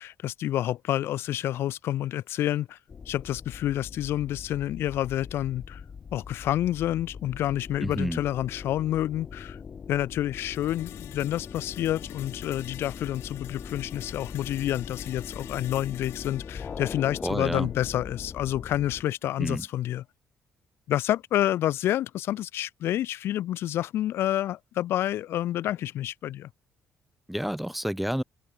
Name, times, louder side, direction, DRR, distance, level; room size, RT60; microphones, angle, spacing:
voice 1, 0.0-2.8 3.1-5.8 6.1-9.6 9.9-20.0 20.9-26.5, left 13 dB, 70° left, 1.0 m, -28 dB
sound 1, 2.9-19.0, left 6 dB, 35° left, 0.7 m, -41 dB
voice 2, 7.8-8.2 17.2-17.7 19.4-19.6 27.3-28.2, equal, ahead, 0.6 m, -29 dB
sound 2, 10.5-18.6, left 15 dB, 90° left, 2.2 m, -48 dB
open air
cardioid pair, 130°, 4 cm